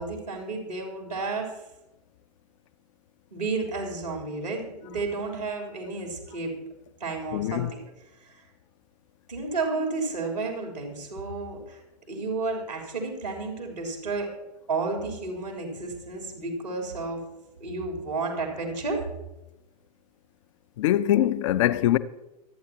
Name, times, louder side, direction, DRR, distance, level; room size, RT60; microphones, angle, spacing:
voice 1, 0.0-1.5 3.3-6.6 7.0-7.8 8.2-8.3 9.3-11.8 12.1-14.3 14.7-17.2 17.6-19.0, right 3 dB, 80° right, 3.7 m, -31 dB
voice 2, 7.3-7.7 20.8-22.0, left 13 dB, 50° left, 0.7 m, -23 dB
25.0 x 9.3 x 2.9 m
figure-of-eight pair, 100°, 21 cm